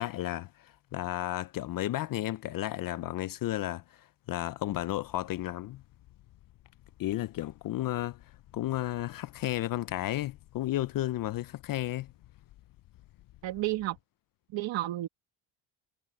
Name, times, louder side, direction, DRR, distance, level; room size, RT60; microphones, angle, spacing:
voice 1, 0.0-5.8 7.0-8.2 8.5-12.1, left 14 dB, 45° left, 0.4 m, -33 dB
sound 1, 4.6-14.0, left 15 dB, 70° left, 7.4 m, -58 dB
voice 2, 13.4-14.0 14.5-15.1, right 15 dB, 60° right, 1.8 m, -31 dB
cardioid pair, 125°, 50 cm